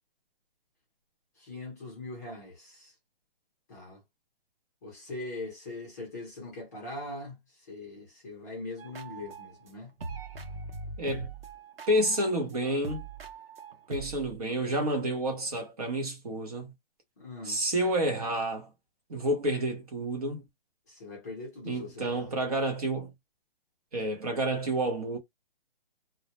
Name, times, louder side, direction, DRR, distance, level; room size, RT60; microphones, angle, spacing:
voice 1, 1.4-2.9 3.7-4.0 4.8-7.4 7.7-9.9 17.2-17.6 20.9-22.3, left 2 dB, 20° left, 0.6 m, -41 dB
sound 1, 8.8-9.7 10.0-14.4, right 3 dB, 80° right, 0.8 m, -41 dB
voice 2, 11.0-11.3 11.9-13.0 13.9-16.7 17.4-18.7 19.1-20.4 21.6-23.1 23.9-25.2, right 1 dB, 40° right, 0.7 m, -29 dB
2.1 x 2.0 x 2.8 m
hypercardioid pair, 165°, 29 cm